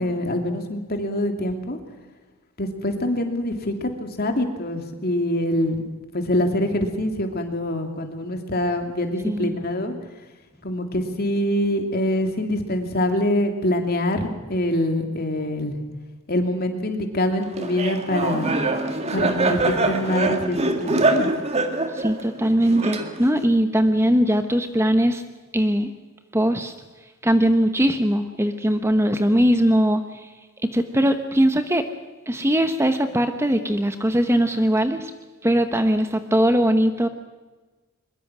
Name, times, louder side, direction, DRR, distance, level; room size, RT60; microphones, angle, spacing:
voice 1, 0.0-1.8 2.6-5.8 6.1-9.9 10.6-15.8 16.3-18.5 19.1-21.3, left 1 dB, 45° left, 5 dB, 2.8 m, -24 dB
Laughter, 17.6-23.4, right 2 dB, 30° right, 2.0 m, -24 dB
voice 2, 21.9-25.2 25.5-25.9 26.3-26.7 27.2-30.3 30.7-31.8 32.3-35.1 35.4-37.1, equal, 10° right, 8 dB, 1.0 m, -20 dB
22.5 x 22.0 x 6.3 m, 1.3 s
head